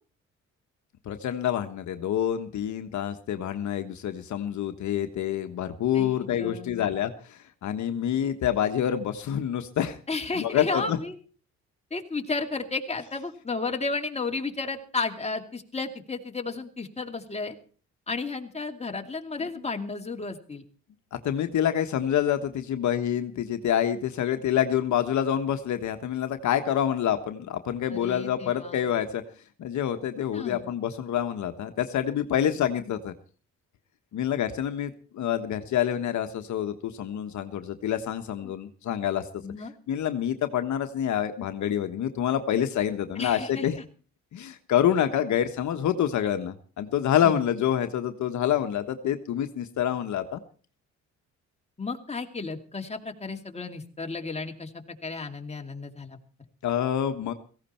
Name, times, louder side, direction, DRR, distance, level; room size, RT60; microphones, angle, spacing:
voice 1, 1.0-10.0 10.4-11.0 21.1-29.2 29.6-33.1 34.1-39.3 39.9-43.8 44.3-50.4 56.6-57.3, left 10 dB, 70° left, 8 dB, 1.3 m, -27 dB
voice 2, 5.9-6.9 10.1-11.2 11.9-17.6 18.1-20.6 27.9-28.9 30.3-30.7 38.4-38.5 39.4-39.7 43.2-43.7 47.2-47.4 51.8-56.2, left 3 dB, 20° left, 4 dB, 2.6 m, -33 dB
17.0 x 16.0 x 4.4 m, 0.40 s
cardioid pair, 90°, 30 cm